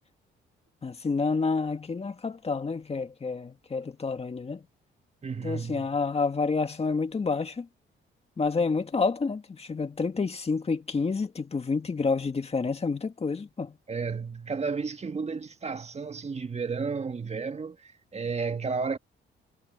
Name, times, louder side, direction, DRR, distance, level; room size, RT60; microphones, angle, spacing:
voice 1, 0.8-4.6 5.4-7.7 8.4-13.8, left 4 dB, 30° left, 2.2 m, -29 dB
voice 2, 5.2-5.9 13.9-19.0, right 5 dB, 35° right, 1.7 m, -32 dB
cardioid pair, 90°, 20 cm